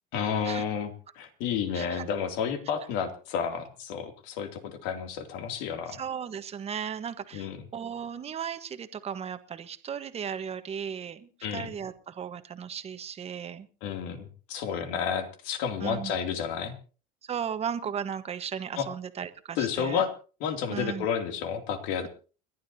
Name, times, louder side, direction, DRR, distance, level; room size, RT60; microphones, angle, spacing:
voice 1, 0.1-6.0 7.3-7.6 11.4-11.7 13.8-16.7 18.8-18.9 19.6-20.1 20.4-22.1, left 7 dB, 70° left, 5 dB, 2.8 m, -31 dB
voice 2, 5.9-13.7 14.7-15.0 15.8-16.1 17.2-20.0 20.7-21.0, right 8 dB, 30° right, 10 dB, 1.3 m, -36 dB
30.0 x 11.5 x 2.8 m, 0.37 s
supercardioid pair, 125°, 21 cm